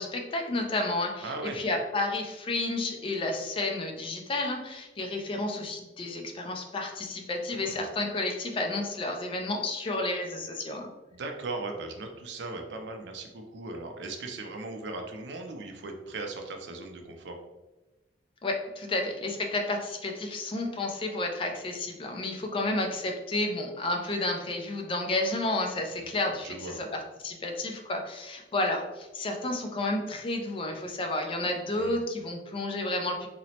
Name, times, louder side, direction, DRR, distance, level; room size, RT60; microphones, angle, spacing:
voice 1, 0.0-10.9 18.4-33.3, left 2 dB, 30° left, 3 dB, 0.3 m, -31 dB
voice 2, 1.2-1.6 7.5-7.8 11.1-17.4 26.0-26.1 26.4-26.9 31.7-32.0, right 3 dB, 70° right, 3 dB, 0.4 m, -38 dB
2.9 x 2.0 x 2.8 m, 1.1 s
head